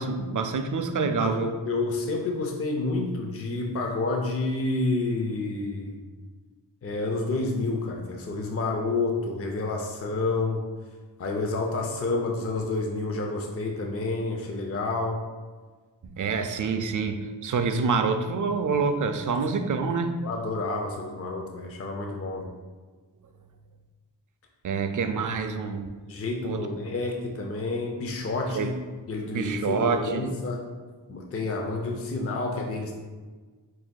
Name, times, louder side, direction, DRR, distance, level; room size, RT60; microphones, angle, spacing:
voice 1, 0.0-1.5 16.2-20.1 24.6-25.9 26.4-26.7 28.5-28.7 29.3-30.3, right 5 dB, 45° right, 8 dB, 0.4 m, -27 dB
voice 2, 1.1-6.0 6.8-10.6 11.2-15.2 19.3-19.4 20.2-22.5 26.1-28.7 29.1-30.6 31.1-32.9, left 3 dB, 35° left, 1 dB, 0.5 m, -29 dB
7.1 x 2.6 x 2.2 m, 1.4 s
wide cardioid pair, 70°, 44 cm